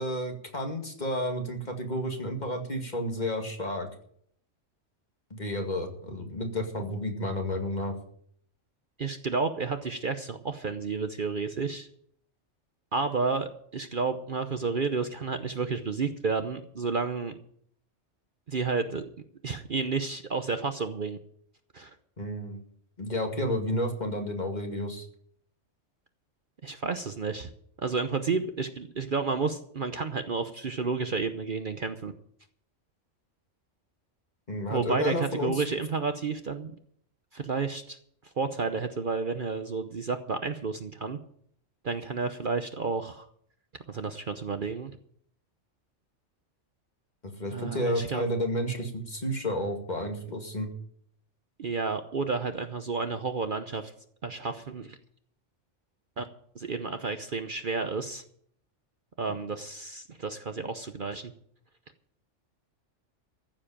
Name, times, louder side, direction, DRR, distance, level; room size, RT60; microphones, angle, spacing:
voice 1, 0.0-3.9 5.3-7.9 22.2-22.6 23.0-25.1 34.5-35.6 47.2-50.7, equal, 35° left, 3 dB, 2.3 m, -31 dB
voice 2, 9.0-11.9 12.9-17.4 18.5-19.0 19.4-21.2 21.7-21.9 26.6-27.5 27.8-32.1 34.7-36.7 37.3-38.0 38.4-41.2 41.8-43.2 43.9-44.9 47.5-48.2 51.6-53.9 54.2-55.0 56.2-56.3 56.5-58.2 59.2-61.3, right 4 dB, 45° right, 8 dB, 0.9 m, -31 dB
14.5 x 7.6 x 8.9 m, 0.64 s
omnidirectional pair, 1.3 m